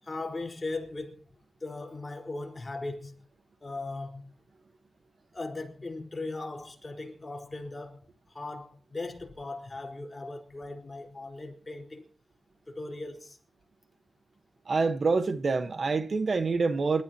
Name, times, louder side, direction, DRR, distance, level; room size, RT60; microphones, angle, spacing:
voice 1, 0.0-1.2 1.6-3.2 3.6-4.3 5.3-8.0 8.3-12.1 12.7-13.4, left 2 dB, 20° left, 4.5 m, -38 dB
voice 2, 14.7-17.0, right 4 dB, 40° right, 1.3 m, -26 dB
27.5 x 14.0 x 3.0 m
wide cardioid pair, 150°, 0 cm